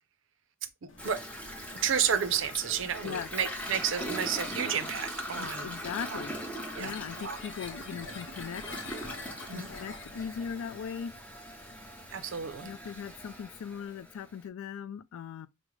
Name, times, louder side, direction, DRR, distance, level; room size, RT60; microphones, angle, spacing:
sound 1, 0.9-10.7, left 3 dB, 65° left, 0.7 m, -48 dB
Toilet flush, 1.0-14.4, equal, 5° left, 0.6 m, -41 dB
voice 1, 1.8-5.7 6.1-6.2 6.7-7.4 9.5-9.7 12.1-12.7, right 8 dB, 65° right, 0.5 m, -31 dB
voice 2, 5.3-6.3 6.8-8.6 9.5-11.1 12.6-15.5, left 7 dB, 85° left, 0.3 m, -39 dB
4.9 x 2.1 x 3.0 m
head